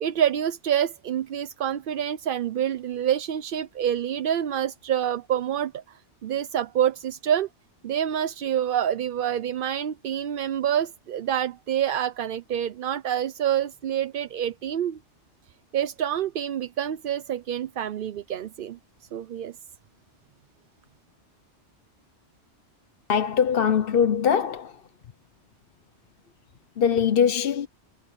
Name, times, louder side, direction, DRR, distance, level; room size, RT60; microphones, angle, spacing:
voice 1, 0.0-5.8 6.2-7.5 7.8-15.0 15.7-18.8 19.1-19.5, right 10 dB, 55° right, 0.7 m, -27 dB
voice 2, 23.1-24.9 26.8-27.7, left 7 dB, 55° left, 0.9 m, -22 dB
omnidirectional pair, 1.2 m